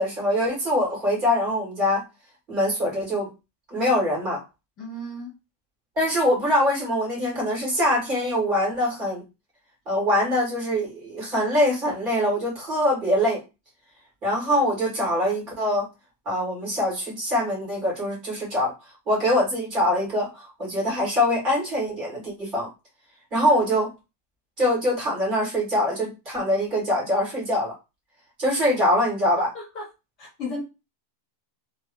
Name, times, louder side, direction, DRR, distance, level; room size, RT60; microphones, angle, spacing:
voice 1, 0.0-2.0 2.5-3.3 3.7-4.4 6.0-9.2 9.9-13.4 14.2-15.9 16.3-18.7 19.1-22.7 23.3-23.9 24.6-27.7 28.4-29.5, left 1 dB, 25° right, 2.2 m, -23 dB
voice 2, 4.8-5.3 29.5-29.9 30.2-30.6, left 2 dB, 25° left, 1.0 m, -34 dB
3.6 x 2.0 x 3.7 m
supercardioid pair, 175°, 0 cm